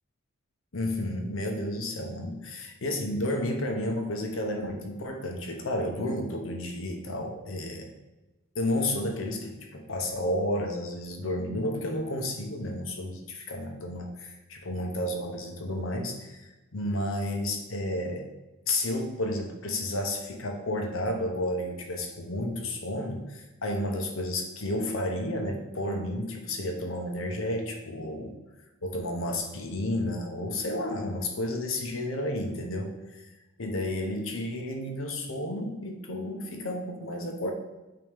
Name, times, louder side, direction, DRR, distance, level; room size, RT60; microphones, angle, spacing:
voice 1, 0.7-7.9 8.5-18.3 18.7-28.4 28.8-33.3 33.6-37.5, left 1 dB, 70° left, 3 dB, 0.9 m, -31 dB
8.8 x 3.0 x 3.5 m, 1.1 s
head